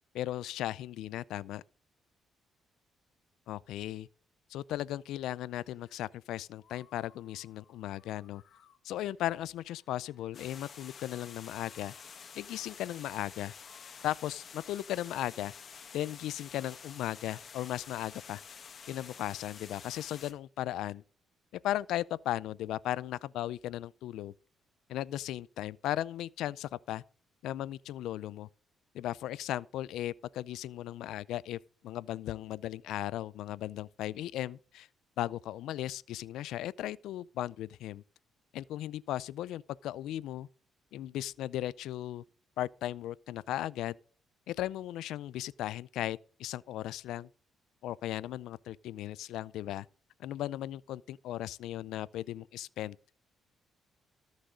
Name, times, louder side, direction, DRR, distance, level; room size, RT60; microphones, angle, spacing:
voice 1, 0.1-1.6 3.5-4.1 4.5-8.4 8.8-11.9 12.4-13.5 14.0-15.5 15.9-18.4 18.9-21.0 21.5-24.3 24.9-27.0 27.4-28.5 28.9-34.9 35.2-38.0 38.5-40.5 40.9-42.2 42.6-44.0 44.5-47.3 47.8-49.9 50.2-53.0, left 13 dB, 85° left, 0.4 m, -36 dB
sound 1, 5.5-6.1 6.6-15.2, left 8 dB, 65° left, 1.6 m, -65 dB
sound 2, 10.3-20.3, left 6 dB, 50° left, 1.6 m, -49 dB
13.5 x 6.4 x 5.0 m
cardioid pair, 90°, 0 cm